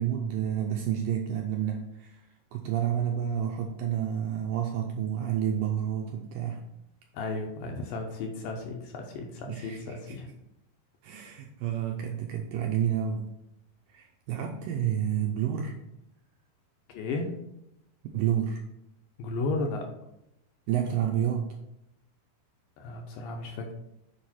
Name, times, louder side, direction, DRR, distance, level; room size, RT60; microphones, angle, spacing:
voice 1, 0.0-2.2 2.5-6.6 9.5-9.8 10.1-10.2 11.0-13.3 13.9-15.8 18.1-18.6 20.7-21.5, right 9 dB, 85° right, 2 dB, 2.0 m, -29 dB
voice 2, 7.1-10.3 16.9-17.4 19.2-19.9 22.8-23.7, left 3 dB, 75° left, 2 dB, 2.2 m, -34 dB
7.1 x 4.8 x 4.3 m, 0.84 s
omnidirectional pair, 4.6 m